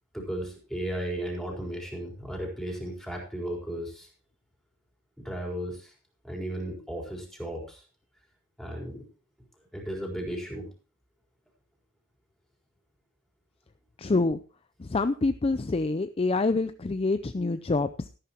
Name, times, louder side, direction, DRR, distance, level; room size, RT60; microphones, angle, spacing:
voice 1, 0.1-4.1 5.2-5.9 6.2-7.8 8.6-9.0 9.7-10.7, right 1 dB, ahead, 0 dB, 4.3 m, -35 dB
voice 2, 14.0-14.4 14.8-18.1, left 3 dB, 25° left, 12 dB, 0.4 m, -26 dB
13.5 x 11.5 x 3.0 m, 0.37 s
head